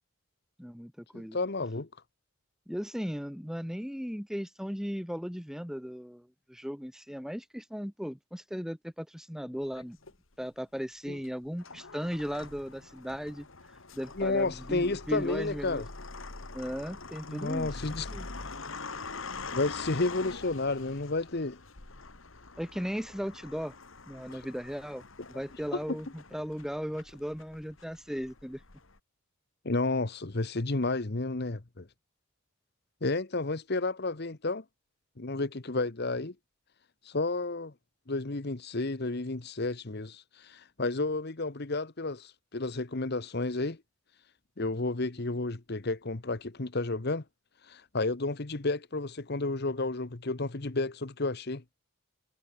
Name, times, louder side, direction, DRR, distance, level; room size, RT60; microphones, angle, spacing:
voice 1, 0.6-1.4 2.7-10.0 10.4-13.5 13.9-15.8 16.5-17.8 18.1-18.3 22.6-23.7 24.1-25.0 25.3-28.6, equal, ahead, 2.2 m, -37 dB
voice 2, 1.3-1.9 11.1-11.2 14.2-15.9 17.3-18.1 19.5-21.6 29.6-31.8 33.0-34.6 35.2-36.3 37.0-37.7 38.1-43.8 44.6-47.2 47.7-51.6, left 2 dB, 50° left, 1.1 m, -31 dB
sound 1, 9.7-10.5 11.2-29.0, left 3 dB, 65° left, 2.2 m, -44 dB
head